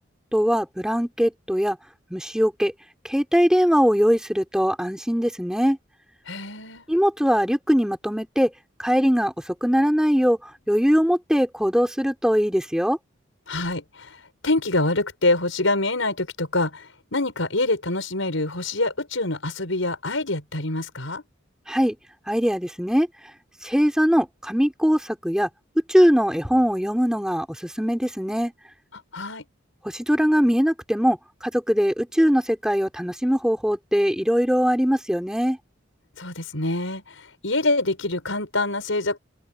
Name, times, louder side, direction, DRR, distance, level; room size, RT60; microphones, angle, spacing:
voice 1, 0.3-1.8 2.1-2.7 3.0-5.8 6.9-8.5 8.8-13.0 21.7-21.9 22.3-23.1 23.6-25.5 25.9-28.5 29.8-35.6, equal, 5° right, 3.3 m, -21 dB
voice 2, 6.3-6.9 13.5-21.2 28.9-29.4 36.2-39.2, left 2 dB, 85° left, 5.6 m, -26 dB
open air
head